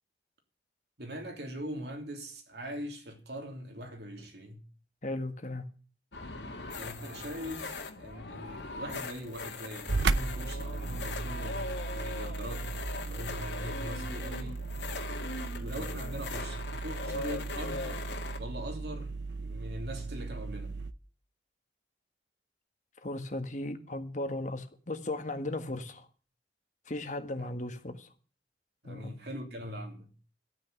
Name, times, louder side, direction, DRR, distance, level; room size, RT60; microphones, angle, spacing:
voice 1, 1.0-4.6 6.8-14.7 15.5-19.1 19.4-20.7 27.4-27.5 28.8-30.1, equal, 65° right, 3.1 m, -42 dB
voice 2, 5.0-5.7 23.0-26.1 26.9-28.1 28.8-29.1, left 2 dB, 45° left, 1.7 m, -36 dB
sound 1, 6.1-18.4, left 3 dB, 80° left, 2.3 m, -40 dB
sound 2, 9.9-20.9, right 3 dB, 90° right, 0.8 m, -36 dB
13.0 x 9.3 x 8.2 m
head